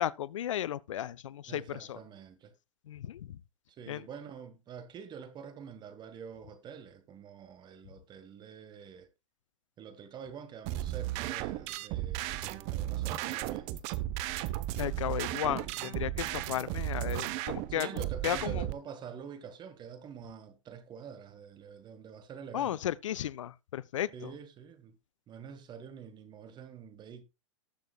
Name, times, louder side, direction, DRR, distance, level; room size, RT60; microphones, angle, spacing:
voice 1, 0.0-2.0 2.9-3.4 3.9-4.0 14.8-18.6 22.5-24.3, left 11 dB, 75° left, 0.5 m, -34 dB
voice 2, 1.5-2.5 3.7-9.1 9.8-13.7 15.8-15.9 17.6-22.8 24.1-24.9 25.3-27.2, right 7 dB, 25° right, 1.7 m, -47 dB
sound 1, 10.6-18.7, right 14 dB, 45° right, 0.9 m, -35 dB
19.0 x 6.8 x 2.3 m
hypercardioid pair, 115°, 16 cm